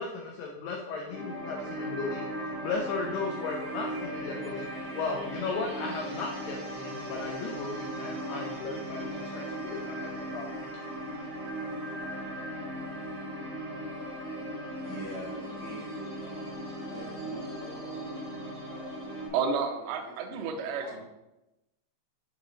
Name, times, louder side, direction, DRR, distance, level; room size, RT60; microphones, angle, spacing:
voice 1, 0.0-2.3 2.6-4.7 4.9-10.7, left 4 dB, 85° left, 0 dB, 2.3 m, -36 dB
sound 1, 1.1-19.3, equal, 60° right, 1.3 m, -37 dB
voice 2, 14.7-18.9 19.2-21.0, left 1 dB, 55° left, -7 dB, 1.5 m, -46 dB
voice 3, 19.3-21.1, right 5 dB, 90° right, 4 dB, 2.2 m, -31 dB
9.2 x 3.1 x 3.8 m, 0.95 s
omnidirectional pair, 5.4 m